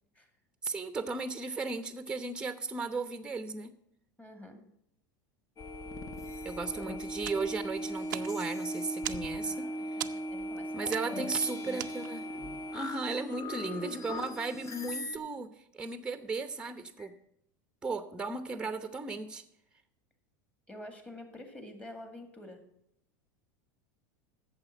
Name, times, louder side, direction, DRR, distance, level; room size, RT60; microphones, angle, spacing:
voice 1, 0.6-3.7 6.4-9.6 10.7-12.2 12.7-15.5 15.7-17.1 17.8-19.4, right 3 dB, 10° right, 10 dB, 0.9 m, -35 dB
voice 2, 4.2-4.6 6.7-7.0 9.4-11.9 13.7-14.1 17.0-17.1 18.6-18.7 20.7-22.6, left 1 dB, 10° left, 6 dB, 2.1 m, -48 dB
sound 1, 5.6-15.2, equal, 30° left, 1.2 m, -38 dB
sound 2, 7.2-12.4, right 14 dB, 85° right, 0.5 m, -43 dB
8.8 x 7.0 x 8.5 m, 0.75 s
supercardioid pair, 105°, 10 cm